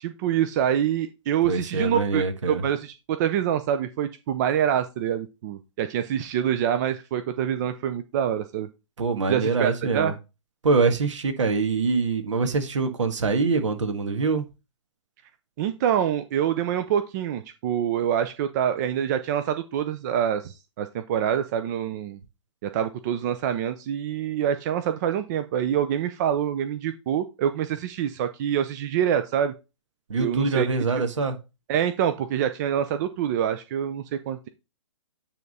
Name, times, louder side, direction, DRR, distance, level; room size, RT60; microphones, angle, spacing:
voice 1, 0.0-8.7 9.3-10.1 15.6-22.2 22.6-29.5 30.2-30.7 31.7-34.5, right 9 dB, 35° right, 0.6 m, -26 dB
voice 2, 1.4-2.6 9.0-10.1 10.6-14.4 30.1-31.4, right 4 dB, 70° right, 1.7 m, -24 dB
9.1 x 3.6 x 4.1 m
hypercardioid pair, 135°, 16 cm